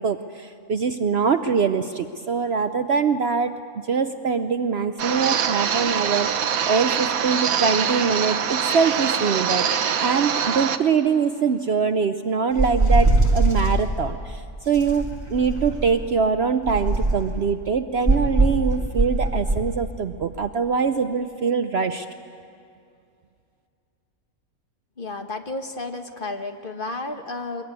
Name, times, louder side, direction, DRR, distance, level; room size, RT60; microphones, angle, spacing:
voice 1, 0.0-3.5 3.9-6.3 6.7-9.7 10.0-22.1, right 5 dB, 55° right, 9 dB, 0.8 m, -23 dB
sound 1, 5.0-10.8, right 7 dB, 70° right, 1.3 m, -24 dB
sound 2, 12.6-13.8 14.7-16.0 16.6-17.3 18.1-19.7, right 2 dB, 10° right, 2.7 m, -21 dB
voice 2, 25.0-27.6, left 2 dB, 40° left, 5 dB, 1.4 m, -32 dB
23.0 x 21.0 x 9.6 m, 2.5 s
omnidirectional pair, 1.5 m